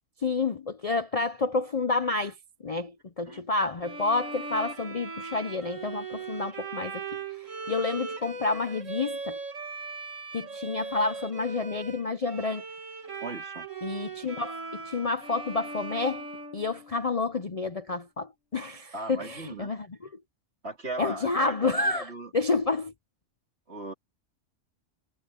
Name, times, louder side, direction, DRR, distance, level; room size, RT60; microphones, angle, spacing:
voice 1, 0.2-2.3 2.6-9.4 10.3-12.6 13.8-16.3 16.5-20.1 21.0-22.9, left 3 dB, 40° left, 0.6 m, -29 dB
Bowed string instrument, 3.8-17.3, right 3 dB, 70° right, 2.8 m, -39 dB
voice 2, 13.2-13.7 18.9-19.7 20.6-21.7 22.0-22.3 23.7-23.9, right 3 dB, 55° right, 4.0 m, -37 dB
omnidirectional pair, 1.3 m